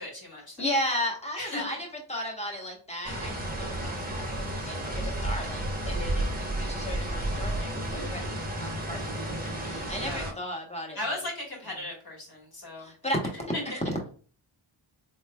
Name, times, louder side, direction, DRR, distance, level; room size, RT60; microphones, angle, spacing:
voice 1, 0.0-0.7 1.4-1.8 10.0-10.4 10.9-12.9 13.3-13.6, left 1 dB, 45° left, -3 dB, 1.6 m, -37 dB
voice 2, 0.6-1.8 2.1-4.8 5.0-8.3 8.6-11.0 12.8-13.2, left 1 dB, 15° left, 0 dB, 1.0 m, -34 dB
sound 1, 3.0-10.3, right 1 dB, 20° right, 0.9 m, -32 dB
4.2 x 3.2 x 2.2 m, 0.41 s
wide cardioid pair, 110°, 49 cm